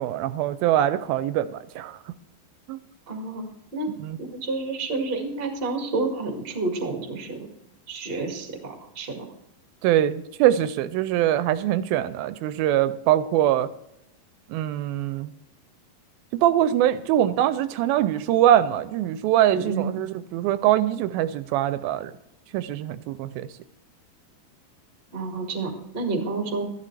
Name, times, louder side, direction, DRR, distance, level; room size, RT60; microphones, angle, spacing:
voice 1, 0.0-2.0 2.7-2.8 4.0-4.2 9.8-13.7 14.5-15.3 16.4-20.1 20.3-22.1 22.5-23.5, right 12 dB, 85° right, 13 dB, 2.3 m, -23 dB
voice 2, 3.1-3.4 3.7-3.9 4.2-7.4 7.9-9.3 19.5-19.9 25.1-26.6, right 3 dB, 30° right, 3 dB, 1.1 m, -29 dB
13.5 x 11.5 x 3.2 m, 0.83 s
omnidirectional pair, 4.3 m